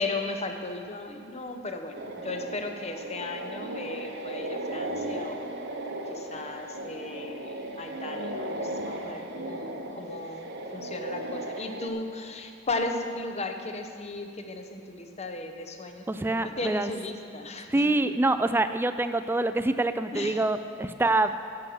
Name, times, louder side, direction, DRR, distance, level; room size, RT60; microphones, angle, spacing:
voice 1, 0.0-5.5 5.9-17.9 20.1-20.4, left 2 dB, 35° left, 5 dB, 0.8 m, -36 dB
sound 1, 1.9-11.9, right 1 dB, 60° right, 0.9 m, -36 dB
voice 2, 16.1-16.9 17.7-21.4, right 2 dB, 10° right, 10 dB, 0.3 m, -25 dB
10.5 x 7.7 x 6.2 m, 2.4 s
head